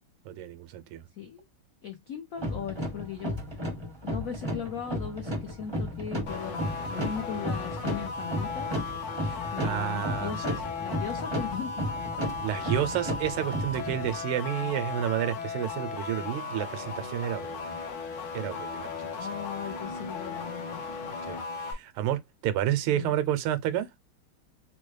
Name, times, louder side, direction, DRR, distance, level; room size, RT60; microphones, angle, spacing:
voice 1, 0.2-1.0 9.2-10.6 12.4-17.6 18.3-19.1 21.3-23.9, right 11 dB, 85° right, 1.5 m, -30 dB
voice 2, 1.8-3.4 4.0-11.9 12.3-12.7 19.1-20.8 22.9-23.2, left 8 dB, 80° left, 0.7 m, -38 dB
sound 1, 2.4-14.2, equal, 30° right, 0.5 m, -34 dB
sound 2, 6.3-21.7, left 4 dB, 65° left, 1.5 m, -36 dB
4.1 x 2.1 x 3.1 m
omnidirectional pair, 2.4 m